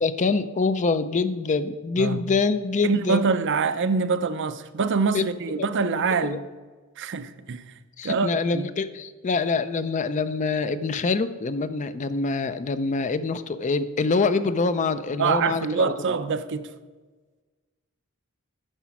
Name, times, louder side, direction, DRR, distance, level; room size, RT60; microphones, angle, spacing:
voice 1, 0.0-3.2 5.1-5.3 5.6-5.7 6.2-6.4 8.0-16.1, left 4 dB, 35° left, 0.4 m, -25 dB
voice 2, 2.8-6.4 7.0-7.6 8.0-8.7 15.2-16.7, right 5 dB, 55° right, 0.5 m, -25 dB
9.9 x 6.1 x 5.9 m
head